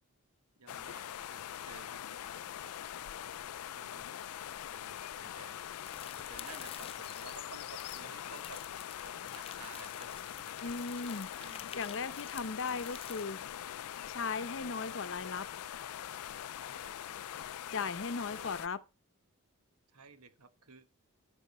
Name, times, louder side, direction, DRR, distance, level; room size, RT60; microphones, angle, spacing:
voice 1, 0.6-2.4 3.7-4.2 4.7-5.6 6.3-8.6 9.0-10.7 11.4-11.7 16.6-17.1 18.3-18.6 19.9-20.9, right 4 dB, 85° right, 1.3 m, -54 dB
sound 1, 0.7-18.7, left 10 dB, 75° left, 0.4 m, -43 dB
sound 2, 5.8-13.2, left 8 dB, 25° left, 0.5 m, -51 dB
voice 2, 10.6-11.3 11.7-15.5 17.7-18.8, left 4 dB, 60° left, 0.8 m, -38 dB
11.0 x 7.1 x 4.3 m
head